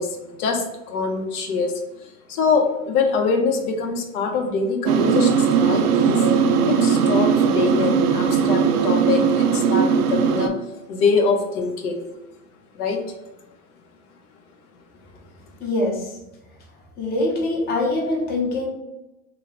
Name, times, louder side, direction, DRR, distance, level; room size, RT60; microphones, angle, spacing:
voice 1, 0.0-1.7 2.0-6.2 6.7-10.5 10.9-12.1 12.7-13.0, left 4 dB, 70° left, 3 dB, 0.7 m, -24 dB
sound 1, 4.9-10.5, right 6 dB, 75° right, 0.5 m, -19 dB
voice 2, 15.6-16.1 17.0-18.7, left 2 dB, 20° left, -2 dB, 0.7 m, -23 dB
2.5 x 2.2 x 3.1 m, 0.96 s
hypercardioid pair, 115°, 46 cm